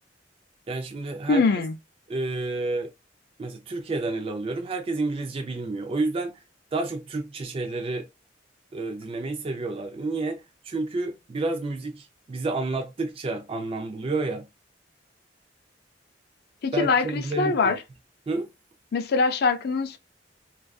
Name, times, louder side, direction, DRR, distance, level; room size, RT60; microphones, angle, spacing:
voice 1, 0.7-1.4 2.1-2.9 3.4-6.3 6.7-8.1 8.7-14.4 16.7-17.8 18.3-18.5, right 3 dB, 30° right, 0.4 m, -30 dB
voice 2, 1.3-1.7 16.6-17.8 18.9-20.0, left 4 dB, 60° left, 0.4 m, -23 dB
2.5 x 2.3 x 2.3 m
head